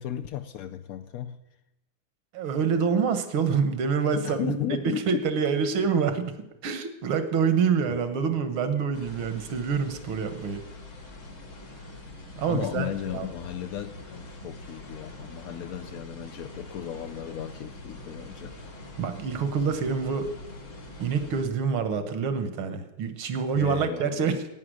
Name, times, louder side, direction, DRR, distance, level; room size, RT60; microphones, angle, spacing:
voice 1, 0.0-1.4 4.1-5.1 7.9-8.0 12.5-18.5 23.6-24.5, left 11 dB, 85° left, 8 dB, 0.8 m, -35 dB
voice 2, 2.3-6.3 6.6-10.6 12.4-13.3 19.0-20.3 21.0-24.4, right 6 dB, 85° right, 10 dB, 2.0 m, -26 dB
sound 1, 8.9-21.4, left 1 dB, 65° left, 3.3 m, -44 dB
15.5 x 9.5 x 6.2 m, 0.88 s
omnidirectional pair, 2.2 m